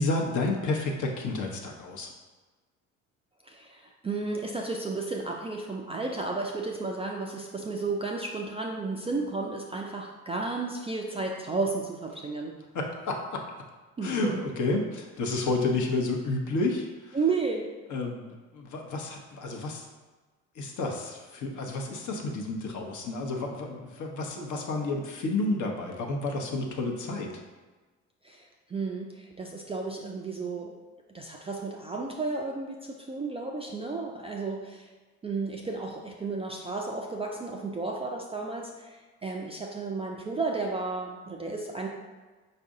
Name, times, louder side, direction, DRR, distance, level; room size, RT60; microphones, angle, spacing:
voice 1, 0.0-2.1 12.7-13.4 14.0-17.2 17.9-18.3 18.5-19.9 20.6-27.4, left 2 dB, 45° left, 1 dB, 0.9 m, -30 dB
voice 2, 3.5-12.6 14.0-14.4 17.1-17.7 28.2-30.8 31.1-34.9 35.2-41.9, right 3 dB, 15° right, 0 dB, 0.4 m, -33 dB
5.3 x 2.5 x 3.7 m, 1.3 s
hypercardioid pair, 60°, 40 cm